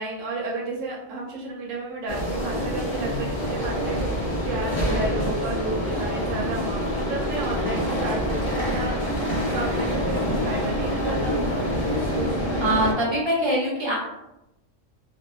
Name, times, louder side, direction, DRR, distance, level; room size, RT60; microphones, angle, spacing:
voice 1, 0.0-9.1 9.5-11.4, right 2 dB, 80° right, -3 dB, 1.0 m, -32 dB
sound 1, 2.1-12.9, equal, 35° left, 0.5 m, -26 dB
voice 2, 12.6-13.9, right 1 dB, 30° right, -5 dB, 0.6 m, -23 dB
2.6 x 2.3 x 2.2 m, 0.90 s
omnidirectional pair, 1.3 m